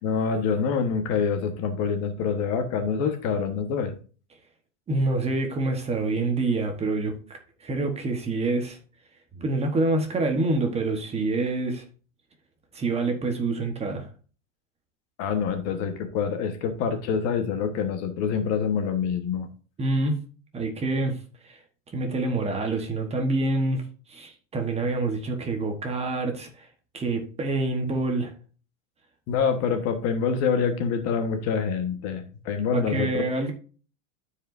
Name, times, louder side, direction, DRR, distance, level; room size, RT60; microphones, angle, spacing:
voice 1, 0.0-3.9 15.2-19.5 29.3-33.2, left 6 dB, 40° left, 1.3 m, -26 dB
voice 2, 4.9-7.2 7.6-8.8 9.4-11.8 12.7-14.1 19.8-20.2 20.5-21.2 21.4-21.6 21.9-23.8 24.1-26.7 26.9-28.3 32.7-33.5, right 2 dB, 15° right, 1.2 m, -26 dB
12.5 x 4.9 x 2.6 m
supercardioid pair, 145°, 38 cm